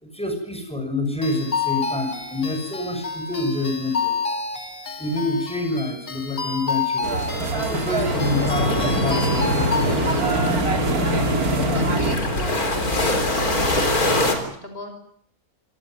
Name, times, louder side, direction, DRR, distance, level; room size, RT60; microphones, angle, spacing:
voice 1, 0.0-4.2 5.0-7.1 7.5-10.0, left 2 dB, 5° left, 5 dB, 6.7 m, -27 dB
sound 1, 1.2-10.3, left 5 dB, 60° left, 2.9 m, -29 dB
sound 2, 7.0-12.2, right 2 dB, 85° right, 3.6 m, -24 dB
sound 3, 8.1-14.3, left 1 dB, 85° left, 4.3 m, -24 dB
voice 2, 11.7-13.0 13.4-14.9, left 2 dB, 40° left, 5 dB, 6.2 m, -36 dB
26.5 x 19.0 x 9.3 m, 0.65 s
omnidirectional pair, 1.5 m